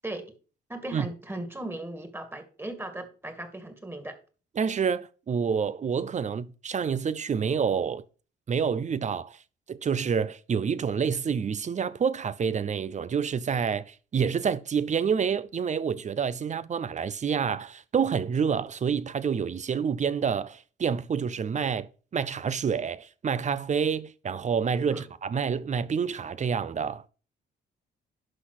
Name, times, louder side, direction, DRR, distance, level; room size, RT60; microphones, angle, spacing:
voice 1, 0.0-0.3 0.7-4.2 24.9-25.0, right 1 dB, 10° right, 2.2 m, -37 dB
voice 2, 4.6-8.0 8.5-9.4 9.7-27.0, right 6 dB, 35° right, 0.6 m, -28 dB
11.5 x 4.1 x 6.1 m
cardioid pair, 90°, 20 cm